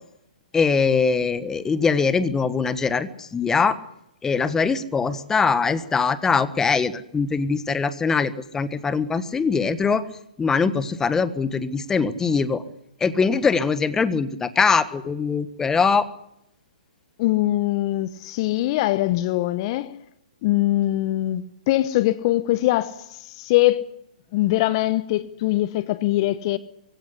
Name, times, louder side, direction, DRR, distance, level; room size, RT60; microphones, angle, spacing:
voice 1, 0.5-3.8 4.2-10.0 10.4-12.6 13.0-16.1, left 5 dB, 10° left, 1.4 m, -22 dB
voice 2, 17.2-19.9 20.4-23.0 23.4-23.8 24.3-26.6, left 16 dB, 40° left, 1.1 m, -22 dB
23.5 x 16.5 x 9.9 m
hypercardioid pair, 125°, 4 cm